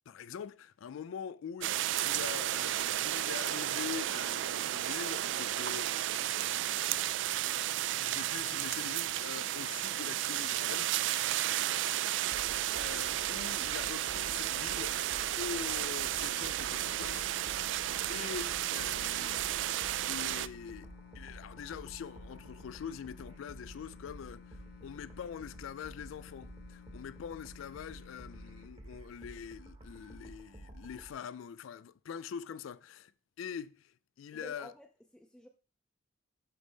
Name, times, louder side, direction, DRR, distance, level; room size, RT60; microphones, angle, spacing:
voice 1, 0.1-6.8 8.0-10.9 11.9-12.3 12.8-15.0 15.4-19.5 20.0-20.9 21.1-33.1 33.4-34.7, left 7 dB, 85° left, 0.3 m, -44 dB
sound 1, 1.6-20.5, right 13 dB, 65° right, 0.3 m, -33 dB
sound 2, 12.3-31.1, right 1 dB, 30° right, 1.0 m, -51 dB
sound 3, 16.7-28.7, left 10 dB, 55° left, 0.7 m, -55 dB
voice 2, 34.3-35.5, left 1 dB, ahead, 0.4 m, -51 dB
11.5 x 3.9 x 3.6 m
head